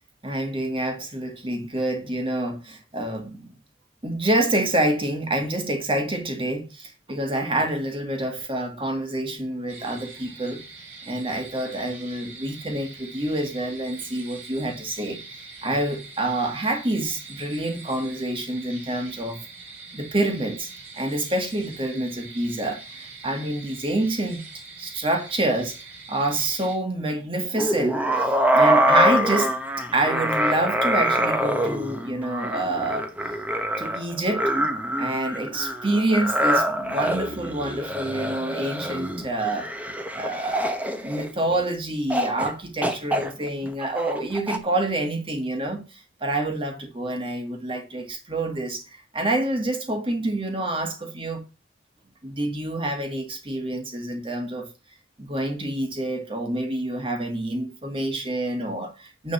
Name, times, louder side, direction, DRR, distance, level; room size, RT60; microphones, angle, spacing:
voice 1, 0.2-3.5 4.0-10.6 11.0-15.2 15.6-19.4 19.9-20.7 21.0-24.4 24.8-25.8 26.1-29.5 29.8-33.1 33.8-34.5 35.0-39.7 40.1-51.4 52.2-54.7 55.2-59.3, right 1 dB, 25° right, 1.7 m, -27 dB
sound 1, 9.7-26.8, right 4 dB, 90° right, 3.1 m, -43 dB
sound 2, 27.6-41.6 42.1-42.5 42.8-44.6, equal, 5° right, 0.9 m, -25 dB
9.7 x 3.8 x 7.1 m
head